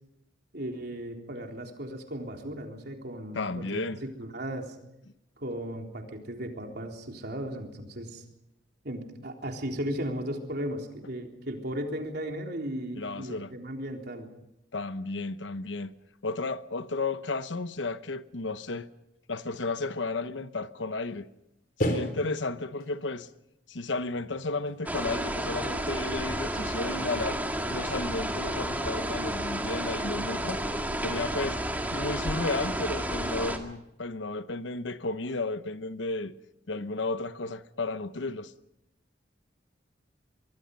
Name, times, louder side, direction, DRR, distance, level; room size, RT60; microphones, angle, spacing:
voice 1, 0.5-3.8 4.2-4.7 5.4-8.2 8.8-14.3, right 1 dB, 60° right, 3.7 m, -36 dB
voice 2, 3.3-4.0 13.0-13.5 14.7-15.9 16.2-18.9 19.3-21.3 21.8-23.3 23.7-27.4 27.7-30.6 31.0-31.6 31.9-36.3 36.7-38.5, left 3 dB, 80° left, 1.0 m, -33 dB
sound 1, 21.1-21.2 21.8-23.0 24.6-24.9 25.2-26.3 26.6-28.1, equal, 50° left, 3.7 m, -36 dB
sound 2, 24.9-33.6, right 1 dB, 10° right, 2.0 m, -31 dB
25.5 x 22.5 x 5.4 m
head